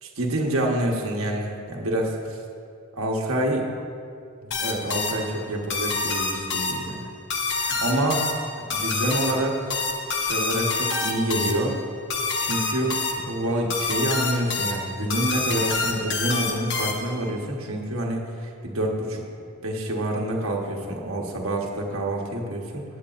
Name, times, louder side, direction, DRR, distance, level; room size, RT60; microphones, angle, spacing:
voice 1, 0.0-2.4 3.0-3.7 4.6-7.1 7.6-8.3 8.7-9.8 10.2-11.8 12.4-19.2 19.6-22.8, right 1 dB, 70° right, 0 dB, 1.2 m, -27 dB
sound 1, 4.5-17.3, left 4 dB, 55° left, 0.9 m, -28 dB
15.5 x 8.3 x 2.5 m, 2.5 s
head